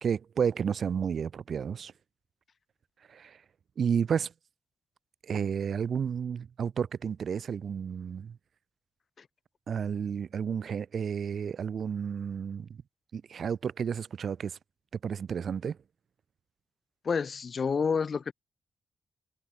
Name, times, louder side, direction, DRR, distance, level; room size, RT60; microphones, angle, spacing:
voice 1, 0.0-1.9 3.1-3.4 3.8-4.3 5.2-8.4 9.7-12.7 13.1-14.6 15.0-15.8, right 7 dB, 60° right, 0.8 m, -31 dB
voice 2, 17.0-18.3, left 5 dB, 50° left, 1.9 m, -28 dB
cardioid pair, 105°, 0 cm